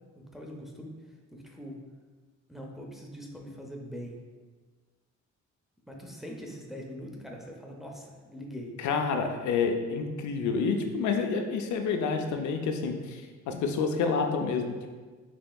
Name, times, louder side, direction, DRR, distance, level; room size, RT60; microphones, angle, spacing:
voice 1, 0.1-0.9 1.3-1.8 2.5-4.2 5.9-8.8, equal, ahead, 0 dB, 0.6 m, -42 dB
voice 2, 8.8-15.0, left 5 dB, 70° left, 5 dB, 0.5 m, -29 dB
5.4 x 2.9 x 2.3 m, 1.4 s
cardioid pair, 90°, 30 cm